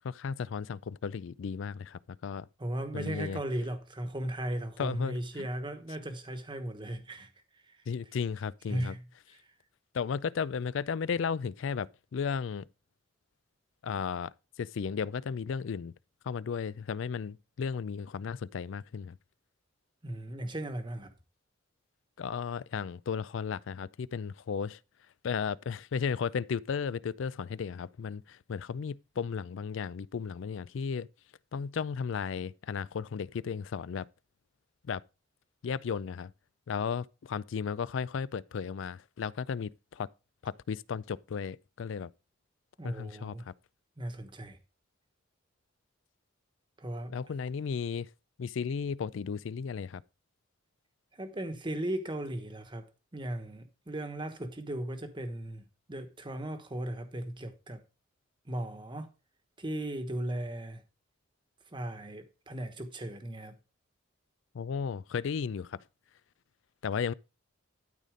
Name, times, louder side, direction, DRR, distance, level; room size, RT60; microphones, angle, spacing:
voice 1, 0.0-2.5 2.9-3.4 4.8-5.5 7.9-9.0 9.9-12.7 13.8-14.3 14.6-15.9 16.3-19.2 22.2-24.8 25.2-31.1 31.5-34.1 34.8-35.0 35.6-36.3 36.7-40.1 40.4-42.1 42.8-43.5 47.1-48.1 48.4-50.0 64.5-65.8 66.8-67.1, left 6 dB, 65° left, 0.4 m, -34 dB
voice 2, 2.6-7.3 7.7-7.8 8.7-9.0 9.3-9.4 20.0-21.1 42.8-43.5 44.0-44.6 46.8-47.1 51.1-52.9 53.1-57.8 58.4-59.1 59.6-60.8 61.7-63.6, right 1 dB, 25° right, 1.2 m, -37 dB
12.5 x 4.1 x 5.1 m
head